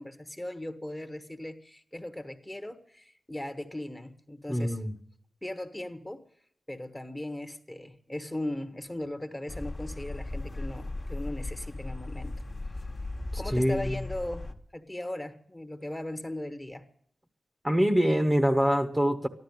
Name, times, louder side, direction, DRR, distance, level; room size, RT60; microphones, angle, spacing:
voice 1, 0.0-4.8 5.4-6.3 6.7-12.4 13.4-16.8, left 1 dB, 10° left, 1.2 m, -38 dB
voice 2, 4.5-4.9 13.5-13.9 17.6-19.3, equal, 10° right, 1.1 m, -24 dB
sound 1, 9.5-14.5, left 2 dB, 30° left, 1.4 m, -37 dB
14.0 x 12.0 x 8.1 m
wide cardioid pair, 140°, 0 cm